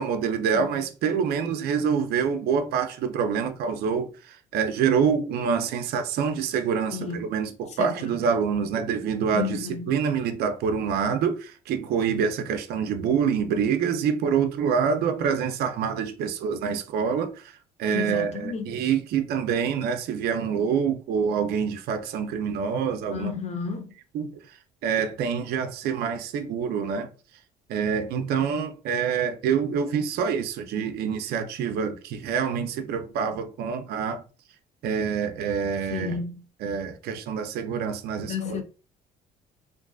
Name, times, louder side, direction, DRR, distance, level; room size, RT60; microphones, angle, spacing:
voice 1, 0.0-23.3 24.1-24.6 24.8-27.1 27.7-34.2 34.8-36.2 36.6-38.6, right 7 dB, 70° right, 0.4 m, -26 dB
voice 2, 6.9-7.2 7.8-8.2 9.3-9.9 17.9-18.9 23.1-23.9 35.9-36.4 38.3-38.6, left 6 dB, 40° left, 0.5 m, -32 dB
2.5 x 2.4 x 2.3 m
cardioid pair, 110°, 17 cm